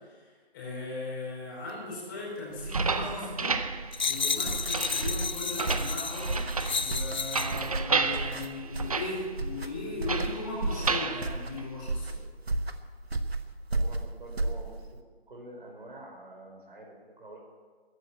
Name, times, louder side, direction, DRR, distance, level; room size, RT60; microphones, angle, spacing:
voice 1, 0.0-3.5 4.1-6.4 6.7-12.2, left 3 dB, 20° left, -6 dB, 5.1 m, -38 dB
sound 1, 2.6-12.2, right 4 dB, 35° right, 0.7 m, -33 dB
sound 2, 3.9-7.7 8.3-8.5, left 5 dB, 45° left, 0.7 m, -32 dB
sound 3, 4.4-15.0, right 2 dB, 70° right, 1.3 m, -33 dB
voice 2, 13.7-15.0 15.3-17.4, right 1 dB, 55° right, -1 dB, 5.0 m, -47 dB
14.5 x 11.0 x 8.6 m, 1.5 s
figure-of-eight pair, 150°, 32 cm